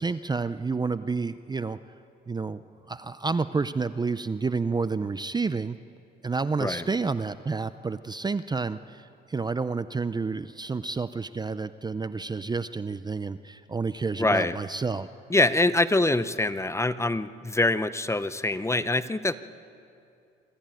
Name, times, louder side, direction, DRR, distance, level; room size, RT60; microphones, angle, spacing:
voice 1, 0.0-1.8 2.3-2.6 2.9-5.8 6.2-15.1, right 4 dB, 20° right, 13 dB, 0.5 m, -29 dB
voice 2, 14.2-14.5 15.3-19.3, left 2 dB, 15° left, 13 dB, 0.7 m, -24 dB
26.0 x 14.0 x 9.1 m, 2.5 s
cardioid pair, 90°, 20 cm